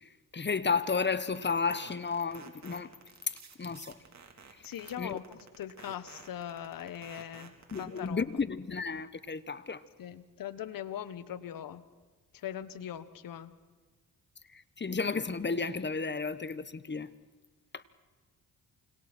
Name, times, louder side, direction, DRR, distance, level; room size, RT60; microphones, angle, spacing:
voice 1, 0.3-2.9 3.6-4.0 5.0-5.2 7.7-9.8 14.5-17.1 17.7-17.8, left 5 dB, 30° left, 1.3 m, -32 dB
sound 1, 1.1-8.1, right 5 dB, 50° right, 3.6 m, -51 dB
voice 2, 4.6-8.2 10.0-11.8 12.3-13.5, left 10 dB, 75° left, 1.4 m, -41 dB
28.5 x 26.0 x 4.5 m
supercardioid pair, 60°, 34 cm